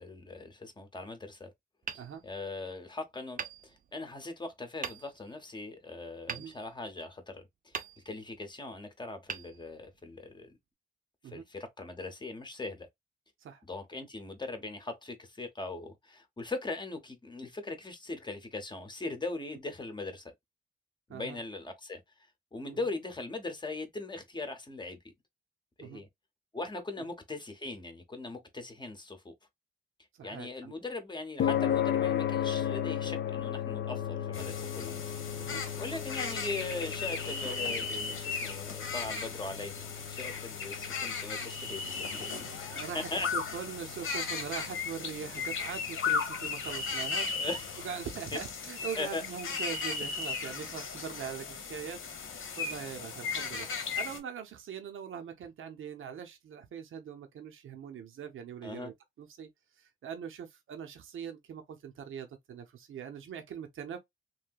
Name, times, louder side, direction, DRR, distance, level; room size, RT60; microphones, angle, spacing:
voice 1, 0.0-1.5 1.9-7.8 8.0-10.5 11.2-12.9 13.7-20.3 21.1-25.0 25.8-26.1 26.5-29.3 30.2-35.0 35.8-43.6 47.4-47.9 48.3-48.4 49.0-49.2 50.6-50.8 58.6-58.9, left 3 dB, 20° left, 0.7 m, -40 dB
Hammer, 1.8-2.8 3.4-4.3 4.8-5.4 6.3-7.2 7.7-8.5 9.2-10.2, right 6 dB, 45° right, 0.5 m, -43 dB
voice 2, 30.1-30.7 35.4-35.6 42.7-47.5 47.8-59.5 59.8-64.0, right 8 dB, 85° right, 0.7 m, -42 dB
sound 1, 31.4-47.9, left 10 dB, 60° left, 0.5 m, -36 dB
sound 2, 34.3-54.2, left 5 dB, 90° left, 1.1 m, -36 dB
3.2 x 2.7 x 2.3 m
wide cardioid pair, 115°, 20 cm